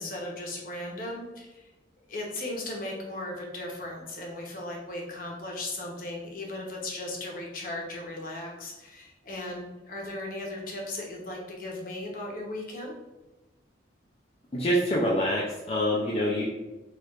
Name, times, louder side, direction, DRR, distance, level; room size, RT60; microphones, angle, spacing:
voice 1, 0.0-1.7 2.1-12.9, left 1 dB, 50° left, -1 dB, 0.8 m, -37 dB
voice 2, 14.5-16.4, equal, 35° left, -4 dB, 0.4 m, -26 dB
4.4 x 2.4 x 2.4 m, 1.1 s
head